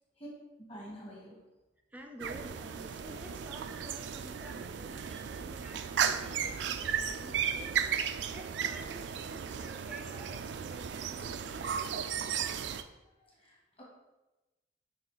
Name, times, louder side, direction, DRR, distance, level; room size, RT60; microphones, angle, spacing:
voice 1, 0.7-1.4 13.2-13.8, equal, 30° left, -4 dB, 1.7 m, -49 dB
voice 2, 1.9-12.3, equal, 10° right, 3 dB, 0.5 m, -51 dB
sound 1, 2.2-12.8, right 7 dB, 70° right, 0.3 m, -35 dB
6.7 x 3.7 x 3.9 m, 1.0 s
head